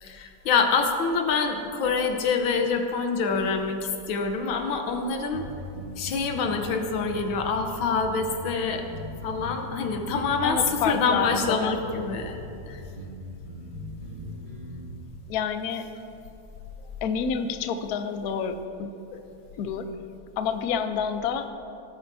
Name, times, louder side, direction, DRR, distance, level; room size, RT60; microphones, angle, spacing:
voice 1, 0.0-5.4 6.0-8.9 9.2-12.4 12.7-12.8 17.2-17.3, left 4 dB, 90° left, 5 dB, 1.7 m, -26 dB
sound 1, 5.3-14.9, equal, 55° right, 2.3 m, -40 dB
voice 2, 10.4-11.8 15.3-15.9 17.0-18.9 19.6-19.9 20.4-21.5, left 6 dB, 65° left, 8 dB, 1.0 m, -28 dB
18.0 x 8.7 x 2.7 m, 2.7 s
omnidirectional pair, 2.1 m